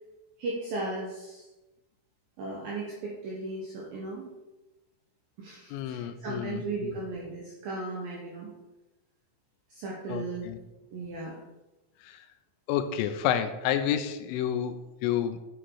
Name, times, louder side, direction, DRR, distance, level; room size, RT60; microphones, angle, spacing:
voice 1, 0.4-1.5 2.4-4.3 5.4-8.5 9.7-10.5 10.9-11.4, right 2 dB, 90° right, -3 dB, 2.0 m, -36 dB
voice 2, 5.7-6.9 10.1-10.6 12.0-12.2 12.7-15.4, left 9 dB, 85° left, 9 dB, 3.0 m, -30 dB
9.7 x 6.4 x 4.7 m, 1.0 s
omnidirectional pair, 6.0 m